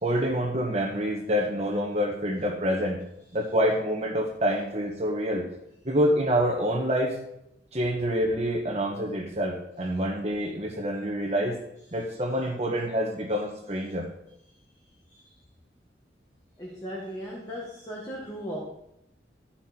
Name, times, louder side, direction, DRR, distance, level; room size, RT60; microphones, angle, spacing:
voice 1, 0.0-3.0 3.3-5.4 5.8-7.2 7.7-11.5 11.9-14.1, equal, 35° right, 0 dB, 1.3 m, -27 dB
voice 2, 16.6-18.6, equal, 20° left, -4 dB, 1.8 m, -37 dB
13.0 x 5.9 x 4.4 m, 0.81 s
head